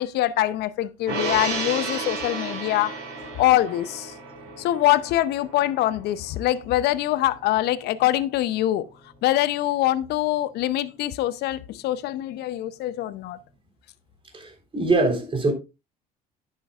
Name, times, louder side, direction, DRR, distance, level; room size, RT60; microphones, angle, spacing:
voice 1, 0.0-2.9 3.4-4.1 4.6-8.8 9.2-13.4, left 14 dB, 60° left, 0.7 m, -24 dB
Gong, 1.1-7.7 8.0-8.2, right 3 dB, 70° right, 5.2 m, -33 dB
voice 2, 14.3-15.5, right 3 dB, 25° right, 3.8 m, -23 dB
11.0 x 9.0 x 2.4 m
hypercardioid pair, 60°, 19 cm